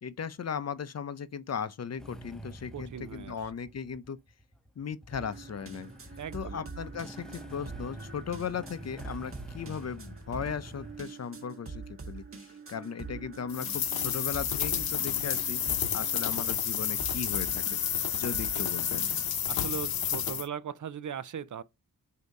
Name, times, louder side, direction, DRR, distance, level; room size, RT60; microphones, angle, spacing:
voice 1, 0.0-4.2 4.8-5.9 6.3-15.6 15.9-17.6 18.1-19.1, left 7 dB, 45° left, 0.5 m, -37 dB
Motorcycle / Engine starting, 2.0-11.1, right 1 dB, ahead, 0.5 m, -47 dB
voice 2, 2.7-3.4 6.2-6.9 15.2-15.4 18.5-18.6 19.5-21.6, right 8 dB, 55° right, 0.5 m, -39 dB
sound 1, 5.1-19.3, right 4 dB, 35° right, 1.2 m, -45 dB
sound 2, 13.5-20.5, left 9 dB, 75° left, 0.8 m, -30 dB
8.0 x 2.8 x 5.2 m
wide cardioid pair, 145°, 36 cm